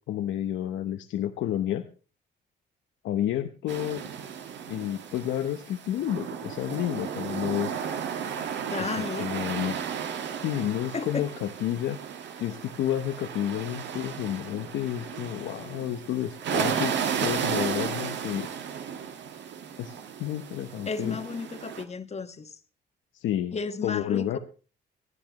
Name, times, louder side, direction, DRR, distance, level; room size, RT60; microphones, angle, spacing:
voice 1, 0.1-1.8 3.0-4.0 4.7-7.8 8.8-9.8 10.4-12.0 12.4-18.5 19.8-21.2 23.1-23.5 23.8-24.4, left 11 dB, 90° left, 1.0 m, -30 dB
sound 1, 3.7-21.8, right 7 dB, 70° right, 1.7 m, -34 dB
voice 2, 8.7-9.2 10.9-11.3 20.9-22.6 23.5-24.4, left 4 dB, 35° left, 1.5 m, -33 dB
26.0 x 9.9 x 3.0 m
cardioid pair, 95°, 19 cm